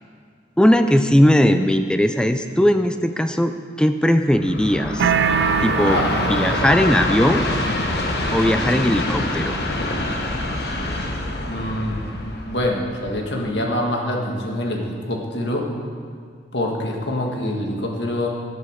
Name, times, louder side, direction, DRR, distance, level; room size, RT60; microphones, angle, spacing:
voice 1, 0.6-5.1 5.6-6.0 6.3-7.4 8.3-9.6, equal, 5° left, 8 dB, 0.4 m, -18 dB
Train, 4.3-13.5, left 1 dB, 65° left, 1.1 m, -25 dB
sound 1, 5.0-6.9, right 7 dB, 85° right, 0.3 m, -22 dB
voice 2, 11.4-12.0 12.5-15.7 16.5-18.3, left 1 dB, 80° left, 0 dB, 1.7 m, -25 dB
11.0 x 7.8 x 6.5 m, 2.1 s
head